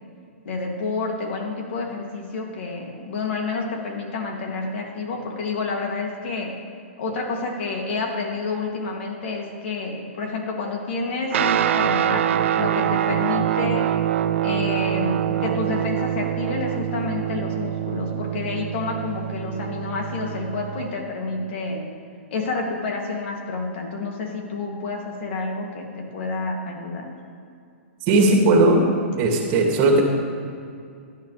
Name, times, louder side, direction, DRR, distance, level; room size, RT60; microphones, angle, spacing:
voice 1, 0.4-6.6 7.0-12.3 12.6-13.9 14.4-21.9 22.3-27.1, left 3 dB, 55° left, 0 dB, 2.9 m, -29 dB
Guitar, 11.3-20.9, right 10 dB, 65° right, 0.7 m, -24 dB
voice 2, 28.1-28.8 29.2-30.0, right 2 dB, 35° right, 0 dB, 2.8 m, -17 dB
16.5 x 11.0 x 3.5 m, 2.4 s
hypercardioid pair, 140°, 7 cm